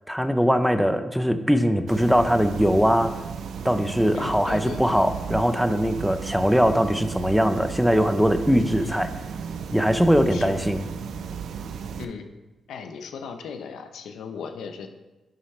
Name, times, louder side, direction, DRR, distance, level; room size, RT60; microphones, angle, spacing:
voice 1, 0.1-3.1 3.6-9.1 9.7-10.8, equal, ahead, 9 dB, 0.6 m, -21 dB
sound 1, 1.9-12.0, right 6 dB, 80° right, 0.4 m, -34 dB
voice 2, 4.1-5.1 8.8-9.0 10.3-10.6 12.0-12.3 12.7-14.9, left 6 dB, 85° left, 7 dB, 0.6 m, -37 dB
9.0 x 5.5 x 3.2 m, 1.1 s
cardioid pair, 60°, 0 cm